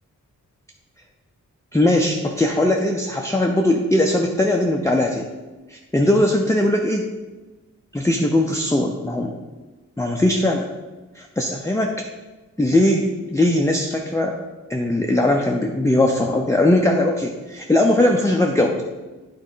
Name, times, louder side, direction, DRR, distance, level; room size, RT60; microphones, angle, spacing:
voice 1, 1.7-5.3 5.7-7.1 7.9-9.3 10.0-10.7 11.2-12.0 12.6-14.3 14.7-18.8, left 1 dB, 10° left, 1 dB, 0.5 m, -19 dB
9.1 x 3.6 x 5.5 m, 1.2 s
wide cardioid pair, 105°, 31 cm